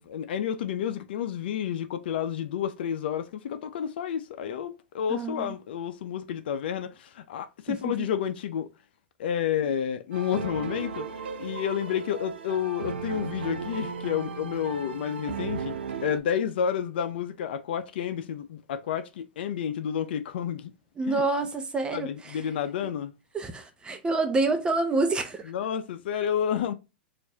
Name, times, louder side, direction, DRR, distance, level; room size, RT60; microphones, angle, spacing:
voice 1, 0.0-8.7 9.2-11.1 11.4-15.7 16.0-20.7 21.0-21.2 21.9-23.1 25.5-26.7, left 9 dB, 70° left, 0.6 m, -30 dB
voice 2, 5.1-5.5 7.7-8.1 21.0-22.4 23.3-25.5, right 3 dB, 15° right, 0.8 m, -28 dB
sound 1, 10.1-16.2, right 5 dB, 85° right, 0.6 m, -36 dB
4.4 x 2.6 x 2.8 m
hypercardioid pair, 120°, 6 cm